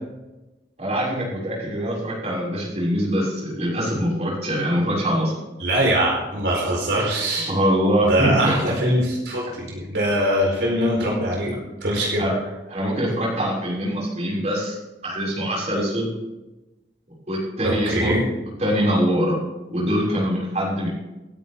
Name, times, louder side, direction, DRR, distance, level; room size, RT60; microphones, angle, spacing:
voice 1, 0.8-5.3 7.5-8.6 12.2-12.3 12.7-14.8 15.0-16.1 17.3-18.1 18.6-19.4 19.7-20.9, equal, 40° right, -5 dB, 6.3 m, -23 dB
voice 2, 5.6-7.5 8.1-12.2 17.6-18.2, equal, 80° right, -2 dB, 4.6 m, -22 dB
28.5 x 9.5 x 3.7 m, 1.1 s
head